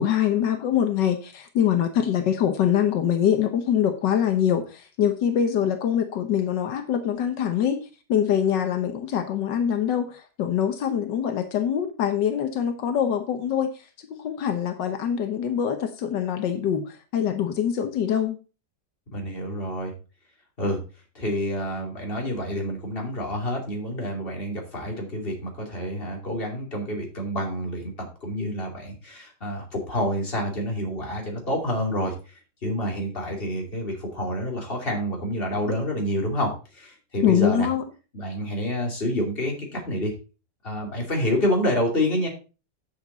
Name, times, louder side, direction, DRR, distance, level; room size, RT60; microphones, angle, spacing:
voice 1, 0.0-7.8 8.1-13.7 14.2-16.8 17.1-18.4 37.2-37.8, left 9 dB, 85° left, 7 dB, 1.7 m, -24 dB
voice 2, 19.1-19.9 20.6-20.8 21.1-37.7 38.1-40.1 40.6-42.3, equal, 30° left, 0 dB, 2.9 m, -28 dB
9.5 x 7.2 x 4.0 m, 0.34 s
omnidirectional pair, 1.9 m